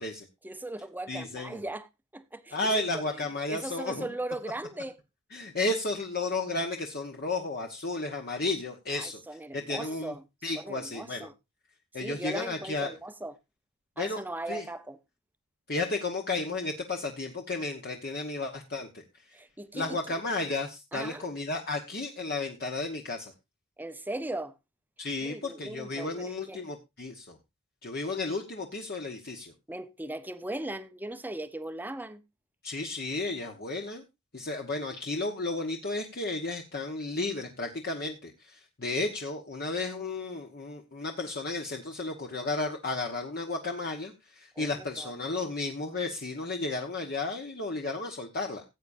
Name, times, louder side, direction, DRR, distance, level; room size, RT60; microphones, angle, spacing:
voice 1, 0.4-1.9 2.1-2.8 3.5-5.0 8.9-10.2 10.6-11.3 11.9-13.4 14.0-15.0 19.3-20.0 20.9-21.3 23.8-24.5 25.2-26.6 29.7-32.2 44.6-45.1, right 1 dB, 10° right, 0.8 m, -38 dB
voice 2, 1.1-1.6 2.5-4.1 5.3-9.2 9.5-10.1 10.4-11.3 11.9-12.9 14.0-14.2 14.5-14.6 15.7-19.0 19.7-23.3 25.0-27.4 27.8-29.5 32.6-34.0 34.3-48.6, left 2 dB, 45° left, 1.2 m, -33 dB
17.0 x 8.5 x 2.6 m
head